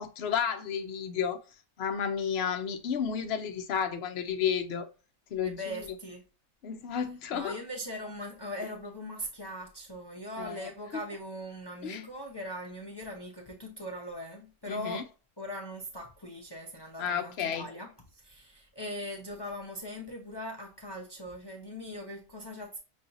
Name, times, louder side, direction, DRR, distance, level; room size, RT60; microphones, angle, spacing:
voice 1, 0.0-1.4 1.8-4.9 5.3-5.9 6.6-7.6 10.4-11.0 11.8-12.0 14.7-15.0 17.0-17.7, left 7 dB, 55° left, 0.8 m, -32 dB
voice 2, 5.4-6.2 7.3-15.1 15.4-22.8, equal, 25° left, 0.6 m, -40 dB
6.3 x 2.9 x 2.5 m
omnidirectional pair, 1.6 m